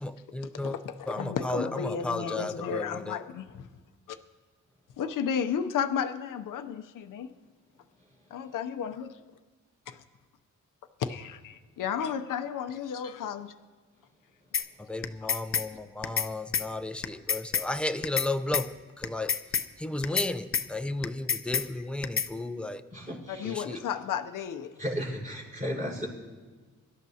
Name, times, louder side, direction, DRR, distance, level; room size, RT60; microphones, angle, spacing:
voice 1, 0.0-0.7 1.1-3.1 14.9-18.7 19.0-19.3 19.8-22.8 23.5-23.8, left 2 dB, 5° left, 0.6 m, -33 dB
voice 2, 0.6-3.7 4.1-4.2 5.0-7.3 8.3-9.2 11.0-13.5 19.2-19.3 21.7-21.9 23.3-24.7, left 7 dB, 80° left, 0.7 m, -33 dB
sound 1, 14.5-14.7 15.0-15.7 16.0-16.3 16.5-16.7 17.0-17.7 18.0-18.3 18.5-18.7 19.0-19.7 20.0-20.3 20.5-20.7 21.0-21.7 22.0-22.3, left 7 dB, 45° left, 0.6 m, -27 dB
voice 3, 22.9-23.6 24.8-26.1, equal, 25° right, 5.1 m, -34 dB
23.5 x 12.0 x 2.8 m
cardioid pair, 95°, 31 cm